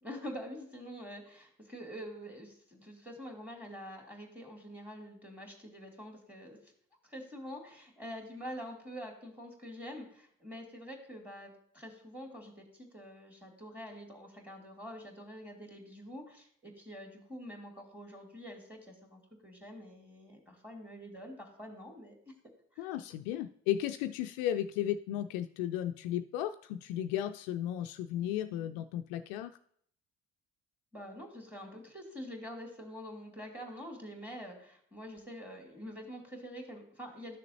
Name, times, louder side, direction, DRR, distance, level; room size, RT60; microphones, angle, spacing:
voice 1, 0.0-6.6 7.0-22.1 22.7-22.9 30.9-37.4, equal, 5° right, 1 dB, 2.4 m, -46 dB
voice 2, 22.8-29.5, left 11 dB, 60° left, 9 dB, 0.5 m, -34 dB
12.0 x 6.6 x 2.7 m, 0.66 s
figure-of-eight pair, 55°, 39 cm